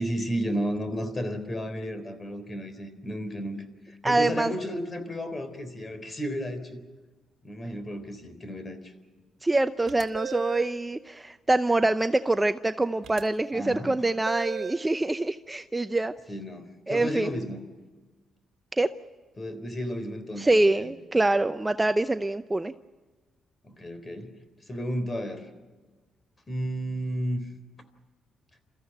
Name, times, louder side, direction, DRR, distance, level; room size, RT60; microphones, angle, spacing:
voice 1, 0.0-6.8 7.4-8.9 13.5-14.0 16.3-17.6 19.4-20.9 23.6-24.3 24.7-25.5 26.5-27.5, equal, 25° left, 10 dB, 3.7 m, -33 dB
voice 2, 4.0-4.5 9.4-16.1 16.9-17.3 18.8-18.9 20.4-22.7, right 2 dB, 15° right, 11 dB, 0.6 m, -25 dB
sound 1, 9.9-10.8 13.0-13.2 14.3-14.9, right 8 dB, 65° right, 2.2 m, -36 dB
28.5 x 14.5 x 9.1 m, 1.3 s
cardioid pair, 90°, 0 cm